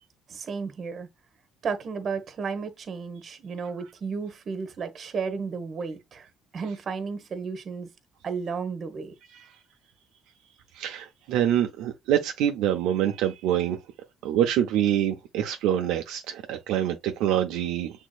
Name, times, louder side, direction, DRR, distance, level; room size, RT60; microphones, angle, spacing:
voice 1, 0.3-1.1 1.6-6.3 6.5-7.9 8.2-9.1, right 5 dB, 50° right, 1.2 m, -33 dB
voice 2, 10.7-13.8 14.2-18.1, right 10 dB, 80° right, 0.6 m, -25 dB
6.3 x 3.6 x 2.3 m
supercardioid pair, 75°, 0 cm